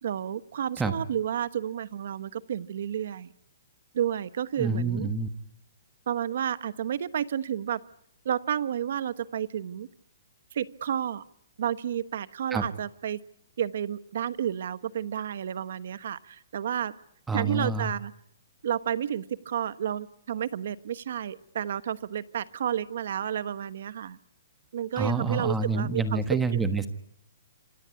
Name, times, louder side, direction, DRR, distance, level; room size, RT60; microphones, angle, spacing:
voice 1, 0.0-3.3 3.9-5.1 6.1-7.8 8.2-9.9 10.5-11.2 11.6-13.2 13.6-16.9 17.3-18.1 18.6-24.2 24.7-26.2 26.5-26.7, right 9 dB, 55° right, 15 dB, 1.1 m, -31 dB
voice 2, 4.6-5.3 12.5-12.6 17.3-17.9 25.0-26.9, right 3 dB, 5° right, 10 dB, 1.3 m, -27 dB
27.0 x 17.5 x 9.6 m, 0.73 s
hypercardioid pair, 175°, 0 cm